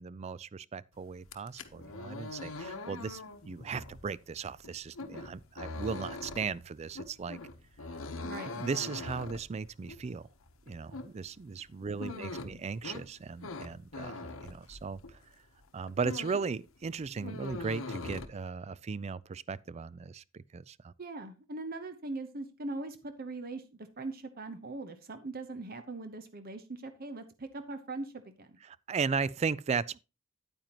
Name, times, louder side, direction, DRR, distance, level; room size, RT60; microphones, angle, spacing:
voice 1, 0.0-7.4 8.5-10.3 10.7-15.2 15.7-20.9 28.7-30.0, right 5 dB, 30° right, 0.3 m, -37 dB
sound 1, 1.2-15.3 15.6-16.6 16.8-18.3, left 3 dB, 80° left, 1.0 m, -42 dB
voice 2, 8.2-8.5 11.9-12.6 21.0-23.6 24.0-28.6, right 2 dB, 45° right, 0.9 m, -41 dB
9.0 x 9.0 x 3.0 m
head